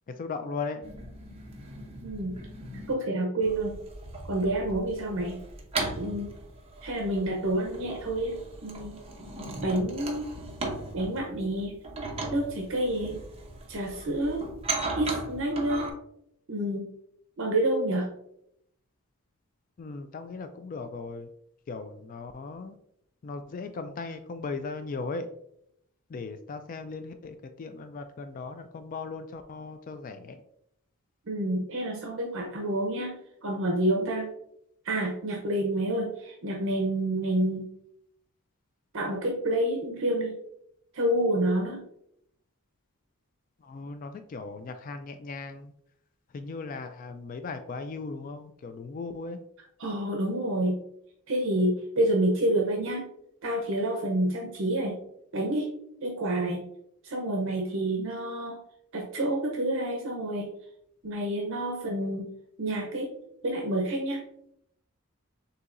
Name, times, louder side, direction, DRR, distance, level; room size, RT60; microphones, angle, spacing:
voice 1, 0.1-0.8 19.8-21.3 21.7-22.8 23.2-25.3 26.1-30.4 43.6-45.7 46.3-49.4, left 4 dB, 40° left, 8 dB, 0.3 m, -37 dB
sound 1, 0.8-2.9 3.4-15.9, right 3 dB, 25° right, 0.8 m, -38 dB
voice 2, 2.0-2.4 2.9-3.8 4.3-5.4 6.0-6.3 6.8-9.0 9.6-10.3 10.9-11.8 12.3-13.2 13.7-14.5 15.0-15.9 16.5-16.9 17.4-18.1 31.3-34.3 34.8-37.7 38.9-40.4 40.9-41.9 49.8-50.8 51.3-53.1 53.4-55.0 55.3-55.7 56.0-56.6 57.0-58.6 58.9-60.5 61.0-62.3 62.6-63.1 63.4-64.2, right 1 dB, 60° right, 1 dB, 0.7 m, -28 dB
6.7 x 2.8 x 2.5 m, 0.74 s
head